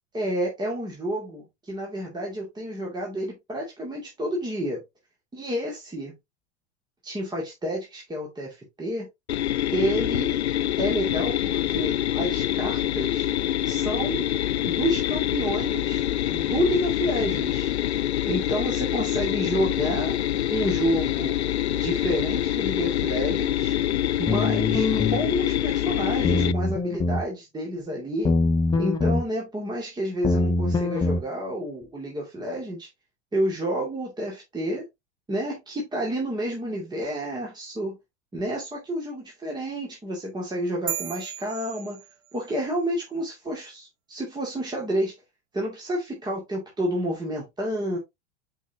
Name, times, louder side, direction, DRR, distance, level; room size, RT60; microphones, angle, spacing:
voice 1, 0.1-4.8 5.3-6.1 7.0-9.1 9.7-10.4 10.8-13.3 13.7-14.2 14.6-16.0 16.3-17.7 18.3-20.2 20.5-21.4 21.7-23.8 24.2-28.3 28.8-32.9 33.3-34.8 35.3-38.0 38.3-42.0 42.3-45.1 45.5-48.0, equal, 10° right, 2.4 m, -29 dB
sound 1, 9.3-26.5, left 12 dB, 70° left, 0.5 m, -25 dB
sound 2, 24.3-25.2 26.2-27.3 28.2-29.2 30.2-31.2, left 3 dB, 10° left, 1.1 m, -23 dB
sound 3, 40.9-42.6, right 10 dB, 65° right, 1.4 m, -35 dB
9.8 x 4.7 x 2.9 m
figure-of-eight pair, 85°, 34 cm